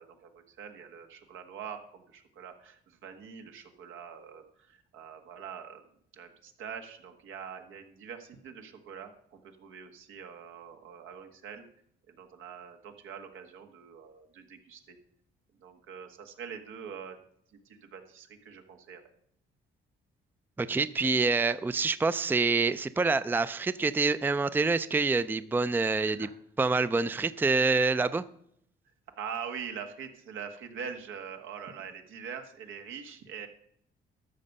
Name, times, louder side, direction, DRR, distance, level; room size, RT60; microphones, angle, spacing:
voice 1, 0.0-11.6 12.1-15.0 15.6-17.2 17.6-19.0 26.0-26.3 28.1-28.2 29.2-33.5, right 7 dB, 85° right, 5 dB, 1.5 m, -44 dB
voice 2, 20.6-26.3 26.6-28.2, right 4 dB, 10° right, 15 dB, 0.4 m, -26 dB
12.5 x 6.7 x 5.4 m, 0.69 s
cardioid pair, 90°, 20 cm